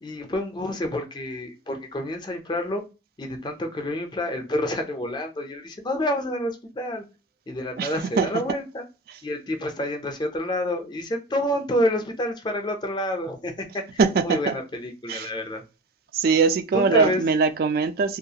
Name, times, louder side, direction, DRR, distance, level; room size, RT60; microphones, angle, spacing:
voice 1, 0.0-2.8 3.2-7.0 7.5-8.8 9.2-13.8 14.2-15.6 16.7-17.2, left 1 dB, 25° left, 0.4 m, -28 dB
voice 2, 7.8-8.3 14.0-14.5 15.1-15.3 16.1-18.2, right 4 dB, 55° right, 0.3 m, -22 dB
2.3 x 2.3 x 2.7 m
head